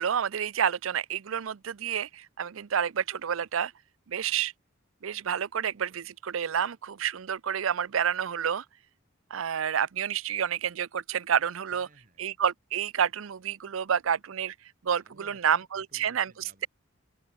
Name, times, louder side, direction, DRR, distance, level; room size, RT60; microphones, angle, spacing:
voice 1, 0.0-3.7 4.1-4.5 5.0-8.6 9.3-11.9 12.2-14.5 14.8-16.3, right 8 dB, 80° right, 0.5 m, -29 dB
voice 2, 11.7-12.2 15.0-16.7, right 2 dB, 40° right, 3.9 m, -58 dB
open air
head